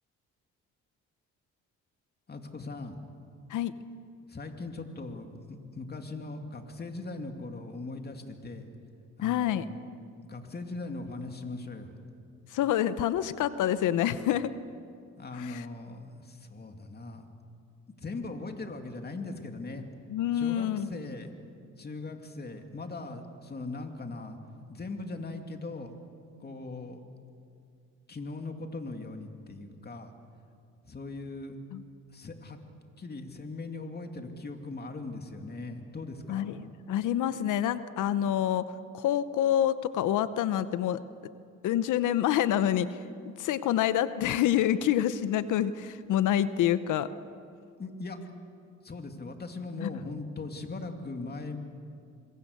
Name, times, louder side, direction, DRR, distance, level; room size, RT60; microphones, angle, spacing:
voice 1, 2.3-3.0 4.3-8.7 9.2-9.6 10.2-12.0 15.2-17.2 17.9-19.9 20.3-21.3 21.8-24.4 24.7-25.9 26.4-27.0 28.1-30.1 30.8-31.6 32.1-32.6 33.0-36.5 47.8-48.2 48.8-51.6, left 3 dB, 35° left, 5 dB, 2.6 m, -39 dB
voice 2, 9.2-9.6 12.5-14.5 15.4-15.5 20.1-20.9 31.7-31.8 36.3-38.7 38.9-41.0 41.6-43.0 43.3-47.1 49.8-49.9, left 11 dB, 85° left, 13 dB, 0.9 m, -27 dB
26.5 x 22.0 x 6.7 m, 2.4 s
cardioid pair, 90°, 30 cm